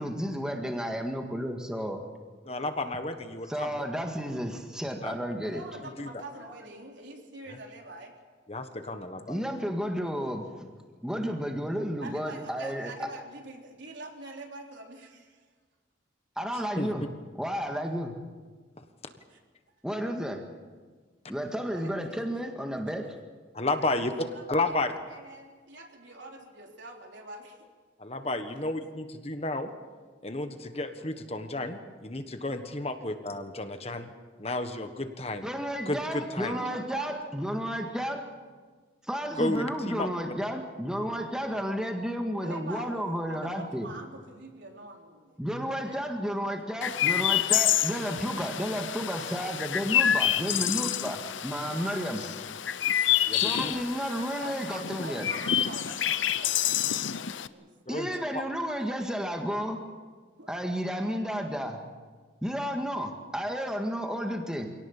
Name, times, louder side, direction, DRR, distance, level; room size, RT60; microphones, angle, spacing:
voice 1, 0.0-2.1 3.5-5.6 6.4-6.6 9.3-10.4 11.0-13.1 16.4-17.1 17.3-18.1 19.8-20.4 21.3-23.1 35.4-38.3 39.1-43.9 45.4-52.2 53.3-55.3 57.9-59.8 60.5-61.8 62.4-64.7, equal, 5° right, 3 dB, 1.8 m, -32 dB
voice 2, 2.5-3.8 5.0-5.1 6.0-6.1 8.5-9.4 16.8-16.9 23.5-24.1 24.5-24.9 28.0-29.7 30.2-34.1 34.4-35.5 35.9-36.6 39.4-40.1 53.3-53.7 57.9-58.1 58.3-58.4, left 2 dB, 35° left, 7 dB, 1.4 m, -32 dB
voice 3, 5.5-8.1 12.0-15.4 19.3-19.4 21.7-22.2 23.8-24.8 25.1-27.7 36.4-37.1 42.4-45.3 45.7-46.0 54.4-58.3 60.4-60.6, right 2 dB, 75° right, 1 dB, 3.8 m, -45 dB
Chirp tweet, 46.8-57.5, left 10 dB, 85° left, 0.8 m, -28 dB
26.0 x 18.0 x 7.3 m, 1.5 s
head